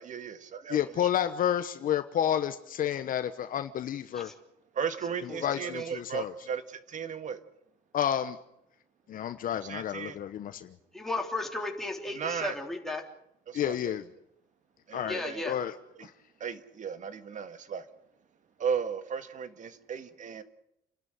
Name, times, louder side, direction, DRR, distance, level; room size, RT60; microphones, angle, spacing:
voice 1, 0.0-0.8 4.8-7.4 9.6-10.2 12.1-12.6 13.5-14.0 14.9-15.4 16.0-16.1 16.4-17.9 18.6-20.4, right 7 dB, 50° right, 11 dB, 1.7 m, -35 dB
voice 2, 0.7-4.3 5.4-6.3 7.9-8.4 9.1-10.7 13.5-14.0 14.9-15.2 15.5-15.7 16.0-16.1, left 10 dB, 55° left, 10 dB, 1.1 m, -30 dB
voice 3, 5.3-5.9 10.9-13.0 15.1-15.6, left 2 dB, ahead, 1 dB, 3.5 m, -35 dB
29.0 x 12.5 x 9.2 m, 0.79 s
cardioid pair, 110°, 17 cm